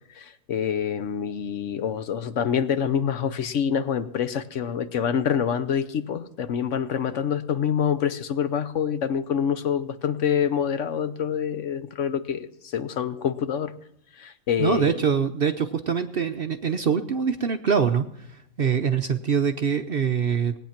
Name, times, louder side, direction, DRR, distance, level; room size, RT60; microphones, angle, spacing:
voice 1, 0.1-13.7 14.2-14.9, left 8 dB, 60° left, 11 dB, 1.0 m, -26 dB
voice 2, 14.6-20.6, right 6 dB, 55° right, 7 dB, 0.7 m, -24 dB
18.5 x 9.3 x 5.8 m, 0.77 s
omnidirectional pair, 1.5 m